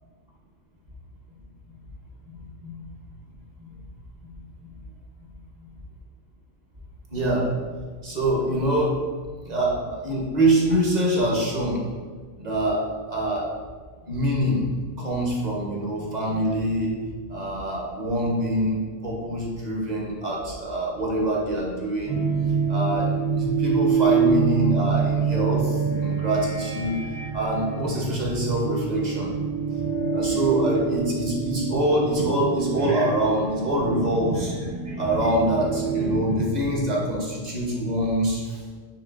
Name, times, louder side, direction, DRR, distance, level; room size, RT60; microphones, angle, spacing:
voice 1, 2.3-2.7 4.2-4.3 4.6-4.7 5.6-5.7 7.1-7.7 8.0-9.0 9.4-11.8 12.4-13.5 14.0-17.0 17.3-22.2 22.7-29.3 29.7-29.8 30.1-34.5 35.0-38.6, right 1 dB, 40° right, -3 dB, 0.8 m, -25 dB
sound 1, 22.1-37.2, right 5 dB, 75° right, 1.5 m, -26 dB
6.7 x 3.2 x 2.4 m, 1.5 s
omnidirectional pair, 1.4 m